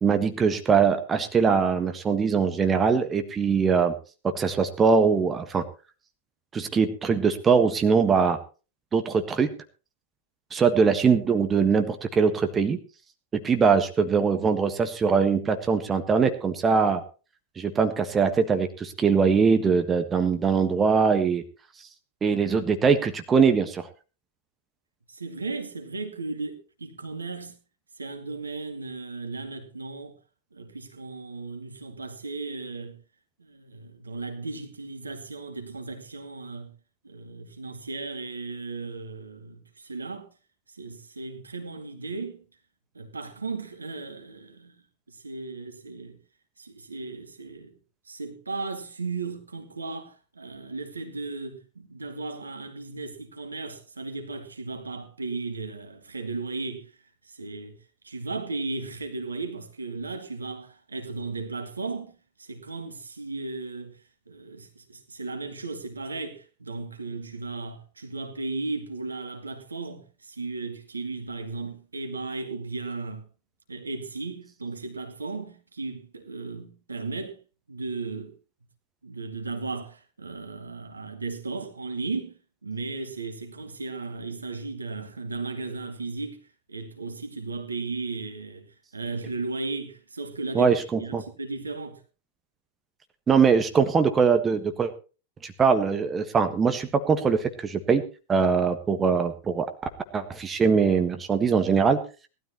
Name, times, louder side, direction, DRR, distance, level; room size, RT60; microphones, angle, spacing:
voice 1, 0.0-3.9 4.3-5.6 6.5-8.4 8.9-9.5 10.5-12.8 13.4-17.0 17.6-21.4 22.2-23.9 90.5-91.2 93.3-94.9 95.4-98.0 98.3-99.7 100.1-102.0, right 5 dB, 20° right, 1.4 m, -22 dB
voice 2, 25.1-27.6 28.0-30.2 30.5-33.0 33.4-36.7 37.0-40.3 40.7-42.4 42.9-44.8 45.1-46.2 46.6-47.8 48.1-56.9 57.3-57.8 58.0-62.1 62.4-64.0 64.3-73.2 73.7-77.4 77.7-78.3 79.0-86.4 86.7-88.7 88.9-92.0, right 3 dB, 75° right, 2.2 m, -35 dB
18.5 x 12.5 x 3.0 m
figure-of-eight pair, 90°, 0 cm